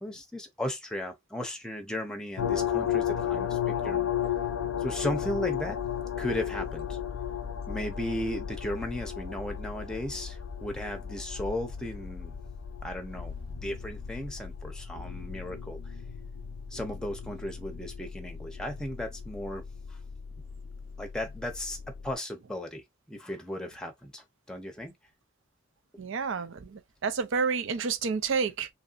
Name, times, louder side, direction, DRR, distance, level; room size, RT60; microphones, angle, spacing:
voice 1, 0.0-4.1 4.8-5.8 6.2-7.0 7.7-12.3 12.8-15.9 16.7-19.6 19.9-20.0 21.0-21.8 22.0-22.8 23.1-24.9, left 1 dB, 5° left, 0.7 m, -36 dB
sound 1, 2.4-22.1, left 9 dB, 90° left, 0.6 m, -35 dB
voice 2, 26.0-28.7, right 5 dB, 60° right, 0.5 m, -29 dB
3.0 x 2.7 x 2.4 m
head